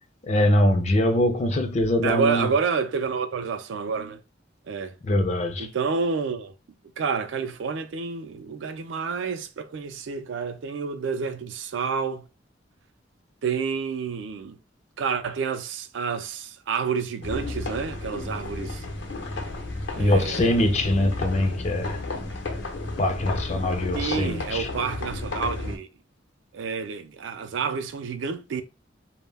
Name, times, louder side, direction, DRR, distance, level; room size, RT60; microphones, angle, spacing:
voice 1, 0.2-2.5 5.0-5.7 20.0-22.0 22.9-24.7, left 1 dB, 35° left, 0.4 m, -23 dB
voice 2, 2.0-4.2 4.7-4.9 5.6-6.5 7.0-12.2 13.4-14.6 15.0-18.8 19.9-20.7 23.9-25.9 26.5-28.6, right 5 dB, 80° right, 0.4 m, -29 dB
sound 1, 17.2-25.8, left 2 dB, 80° left, 0.7 m, -32 dB
2.1 x 2.1 x 3.2 m
head